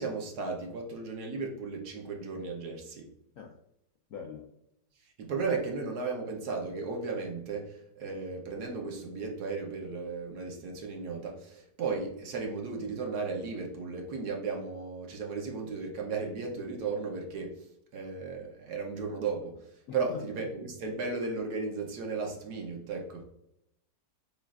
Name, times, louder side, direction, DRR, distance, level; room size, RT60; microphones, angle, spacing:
voice 1, 0.0-3.1 5.2-17.7 17.9-23.3, right 4 dB, 65° right, 1.3 m, -35 dB
voice 2, 4.1-4.5 19.9-20.2, left 7 dB, 70° left, 0.8 m, -42 dB
7.2 x 2.4 x 2.4 m
omnidirectional pair, 1.9 m